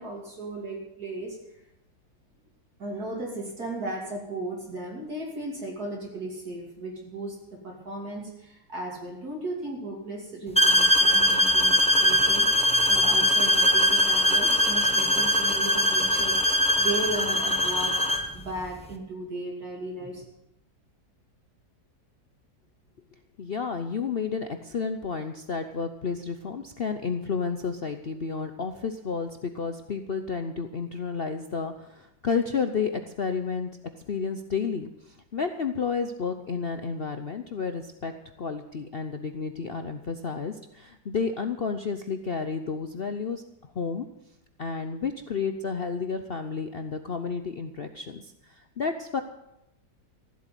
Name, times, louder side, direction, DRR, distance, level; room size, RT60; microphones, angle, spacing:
voice 1, 0.0-1.4 2.8-20.3, right 2 dB, 55° right, -2 dB, 3.2 m, -36 dB
sound 1, 10.6-18.3, equal, 5° left, 0.8 m, -21 dB
voice 2, 23.4-33.7 34.1-38.1 38.4-43.4 43.7-44.1 44.6-49.2, left 5 dB, 60° left, 8 dB, 0.6 m, -31 dB
14.5 x 8.1 x 9.1 m, 0.86 s
omnidirectional pair, 2.0 m